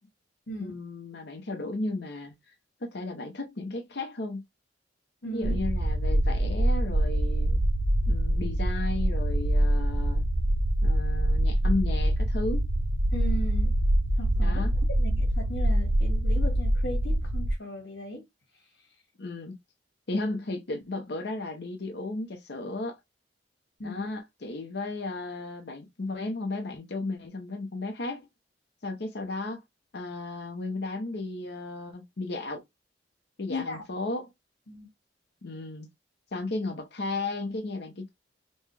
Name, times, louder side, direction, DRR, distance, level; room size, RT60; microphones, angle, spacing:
voice 1, 0.6-2.3 2.8-4.4 5.3-7.6 8.1-10.3 10.8-12.7 14.4-14.7 19.2-19.5 20.1-23.0 23.8-28.3 28.8-29.6 29.9-32.6 33.4-34.3 35.4-35.9 36.3-38.1, left 2 dB, 65° left, 0.8 m, -34 dB
voice 2, 5.2-5.6 13.1-13.7 14.2-14.6 15.0-18.2 23.8-24.1 33.5-33.8 34.7-34.9, equal, 85° left, 1.8 m, -37 dB
sound 1, 5.4-17.5, right 1 dB, 70° right, 0.6 m, -25 dB
5.4 x 2.2 x 3.3 m
head